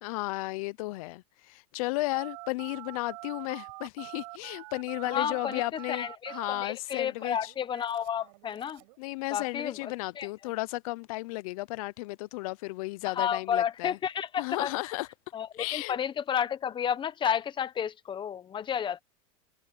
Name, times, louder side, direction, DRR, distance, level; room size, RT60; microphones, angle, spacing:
voice 1, 0.0-6.1 6.3-7.5 9.0-14.0 14.4-15.1 15.6-16.0, left 22 dB, 75° left, 0.8 m, -34 dB
Telephone, 2.1-9.0, right 28 dB, 70° right, 7.6 m, -45 dB
voice 2, 5.0-5.6 5.9-8.8 9.3-10.3 13.0-14.7 15.3-19.0, left 8 dB, 25° left, 1.2 m, -31 dB
supercardioid pair, 125°, 18 cm